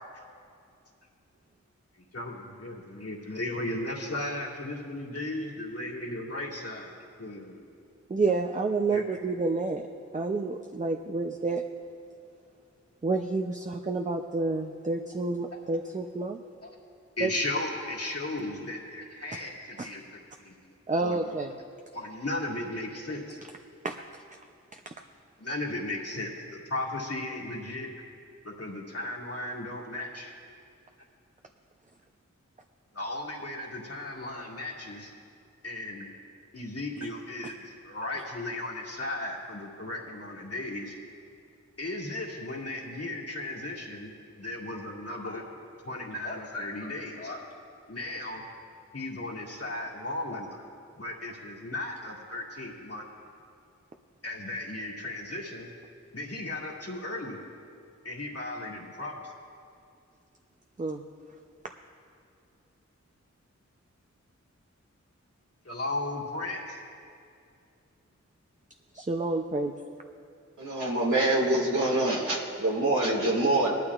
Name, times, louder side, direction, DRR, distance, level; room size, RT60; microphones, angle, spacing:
voice 1, 2.1-7.6 8.9-9.0 15.5-15.6 16.6-16.7 17.2-21.3 21.9-23.4 25.4-27.9 28.4-30.3 32.9-35.1 35.6-36.1 36.5-40.9 41.8-44.1 44.4-45.4 45.8-47.4 47.9-48.4 48.9-50.6 51.0-53.0 54.2-55.7 56.1-57.4 58.0-59.2 65.7-66.8, left 2 dB, 55° left, -3 dB, 2.1 m, -36 dB
voice 2, 8.1-9.9 10.1-11.6 13.0-16.4 17.2-17.3 19.8-19.9 20.9-21.6 23.8-23.9 24.9-25.0 37.0-37.1 60.8-61.1 68.9-69.7, right 3 dB, 25° right, 4 dB, 0.5 m, -29 dB
voice 3, 70.6-73.7, right 2 dB, 80° right, -3 dB, 2.2 m, -25 dB
19.0 x 11.5 x 2.4 m, 2.5 s
wide cardioid pair, 45°, 29 cm